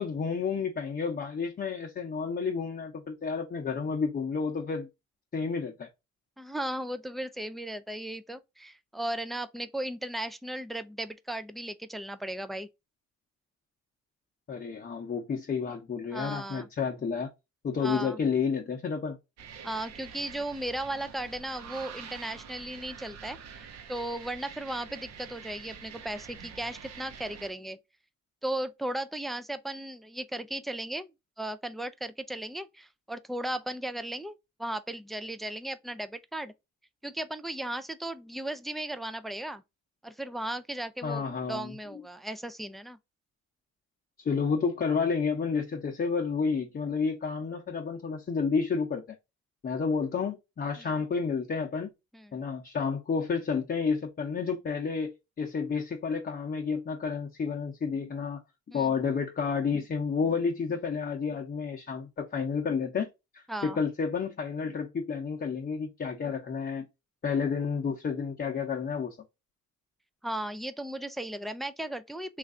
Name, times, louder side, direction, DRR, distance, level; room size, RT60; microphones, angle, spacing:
voice 1, 0.0-4.9 5.3-5.9 14.5-17.3 17.6-19.2 41.0-41.7 44.2-49.0 49.6-51.9 52.3-55.1 55.4-58.4 58.7-66.9 67.2-69.2, left 5 dB, 30° left, 0.7 m, -30 dB
voice 2, 6.4-12.7 16.1-16.7 17.8-18.2 19.6-27.8 28.4-34.3 34.6-36.5 37.0-39.6 40.0-41.2 41.5-43.0 50.8-50.9 52.1-52.4 58.7-58.9 63.5-63.8 70.2-72.4, right 1 dB, ahead, 0.3 m, -36 dB
sound 1, 19.4-27.5, right 6 dB, 60° right, 0.8 m, -46 dB
3.1 x 2.5 x 3.6 m
cardioid pair, 90°, 30 cm